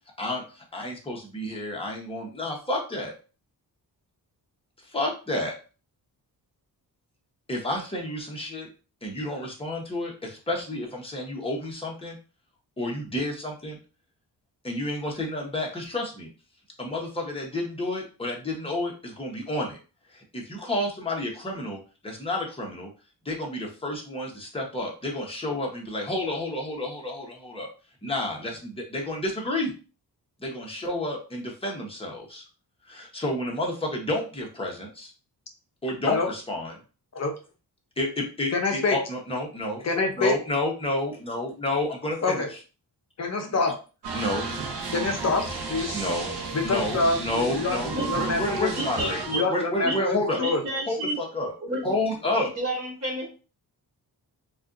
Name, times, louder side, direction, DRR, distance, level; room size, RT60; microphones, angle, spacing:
voice 1, 0.2-3.1 4.8-5.5 7.5-8.7 9.0-12.2 12.8-13.8 14.6-16.3 16.8-19.8 20.1-22.9 23.2-27.7 28.0-29.7 30.4-32.4 32.8-35.1 35.8-36.8 38.0-42.6 43.4-43.6 44.1-44.7 45.9-46.3 46.6-50.4 50.8-51.5 51.8-52.5, left 1 dB, 15° left, 0.9 m, -30 dB
voice 2, 38.5-39.0 39.8-40.3 42.2-42.5 43.2-43.7 44.9-46.0 46.5-48.7 49.3-50.6, left 3 dB, 40° left, 0.6 m, -26 dB
sound 1, 44.0-49.4, right 4 dB, 90° right, 0.8 m, -33 dB
voice 3, 48.7-49.4 49.8-50.0 50.4-51.2 51.6-51.8 52.6-53.3, right 1 dB, 40° right, 1.1 m, -30 dB
4.2 x 2.4 x 2.5 m
wide cardioid pair, 135°, 39 cm